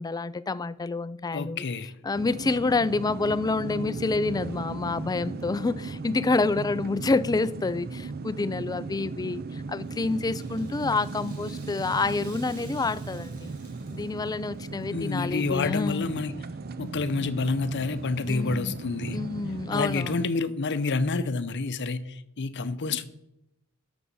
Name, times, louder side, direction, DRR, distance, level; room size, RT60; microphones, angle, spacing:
voice 1, 0.0-1.6 2.0-13.5 13.9-16.1 18.3-18.7 19.1-20.1, left 3 dB, 15° left, 0.3 m, -28 dB
voice 2, 1.3-1.9 14.9-16.3 16.8-19.2 19.7-23.1, left 3 dB, 55° left, 0.7 m, -28 dB
sound 1, 2.1-20.3, right 3 dB, 45° right, 0.5 m, -37 dB
Rattle (instrument), 9.7-15.0 15.3-15.4 16.2-16.3, right 4 dB, 70° right, 3.4 m, -53 dB
13.0 x 6.1 x 5.5 m
head